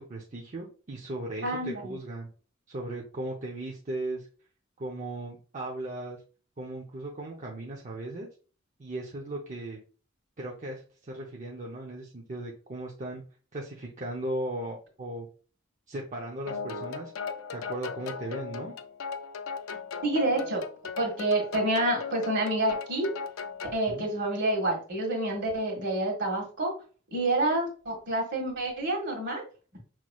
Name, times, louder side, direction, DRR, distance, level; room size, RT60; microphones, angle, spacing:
voice 1, 0.0-2.3 2.7-4.3 4.8-6.2 6.6-8.3 8.8-9.8 10.4-13.2 13.5-15.3 15.9-17.1 17.5-18.7 23.9-24.1, right 1 dB, 40° right, -2 dB, 0.7 m, -37 dB
voice 2, 1.4-1.9 20.0-20.6 21.0-23.1 23.7-26.7 27.1-29.4, right 1 dB, 60° right, 1 dB, 1.8 m, -28 dB
sound 1, 16.5-23.8, left 5 dB, 80° left, 0.5 m, -37 dB
5.8 x 3.1 x 2.3 m, 0.38 s
head